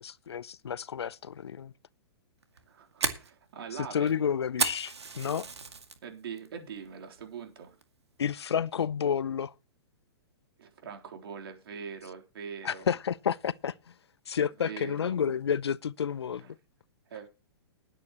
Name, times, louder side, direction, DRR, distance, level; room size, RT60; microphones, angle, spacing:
voice 1, 0.0-1.7 3.9-5.5 8.2-9.5 12.6-13.7 14.3-16.6, left 7 dB, 80° left, 0.6 m, -30 dB
Fire, 2.4-6.0 6.4-6.8 7.2-7.3 7.8-8.2, right 4 dB, 85° right, 2.2 m, -33 dB
voice 2, 2.7-4.2 6.0-7.8 10.6-12.9 14.4-15.2 16.4-16.5 17.1-17.3, right 6 dB, 65° right, 3.6 m, -43 dB
20.0 x 8.8 x 3.0 m
hypercardioid pair, 120°, 14 cm